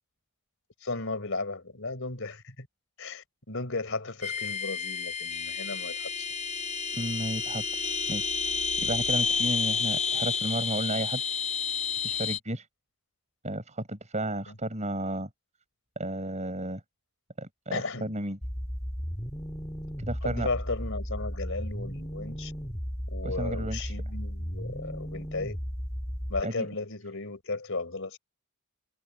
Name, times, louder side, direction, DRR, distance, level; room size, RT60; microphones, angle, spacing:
voice 1, 0.8-2.7 3.0-6.3 14.5-14.6 17.7-18.1 20.2-22.5 23.1-25.6 26.3-28.2, left 3 dB, 60° left, 4.5 m, -35 dB
sound 1, 4.2-12.4, left 5 dB, 35° left, 6.3 m, -30 dB
voice 2, 6.9-11.2 12.0-12.7 13.4-15.3 16.0-16.8 17.4-18.4 20.0-20.5 23.2-23.9 26.4-26.7, right 1 dB, 30° right, 7.2 m, -33 dB
sound 2, 18.4-26.4, equal, 15° left, 2.7 m, -35 dB
head